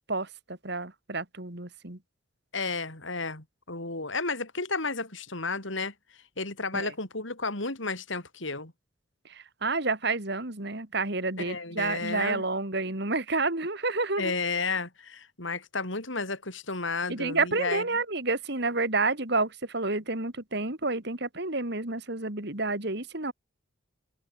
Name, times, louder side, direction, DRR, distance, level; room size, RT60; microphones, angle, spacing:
voice 1, 0.1-2.0 6.7-6.9 9.3-14.3 17.1-23.3, right 3 dB, 55° right, 2.9 m, -29 dB
voice 2, 2.5-5.9 6.4-8.7 11.4-12.4 14.2-17.8, left 3 dB, 70° left, 5.0 m, -32 dB
head